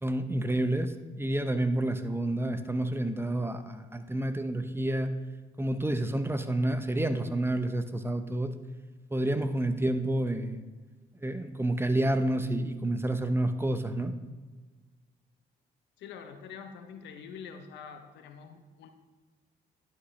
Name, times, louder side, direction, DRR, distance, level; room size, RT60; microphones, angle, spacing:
voice 1, 0.0-5.1 5.6-8.5 9.1-10.6 11.2-14.1, right 1 dB, 15° right, 9 dB, 0.6 m, -29 dB
voice 2, 16.0-18.9, left 6 dB, 80° left, 7 dB, 0.8 m, -45 dB
11.0 x 4.9 x 3.2 m, 1.3 s
supercardioid pair, 60°, 18 cm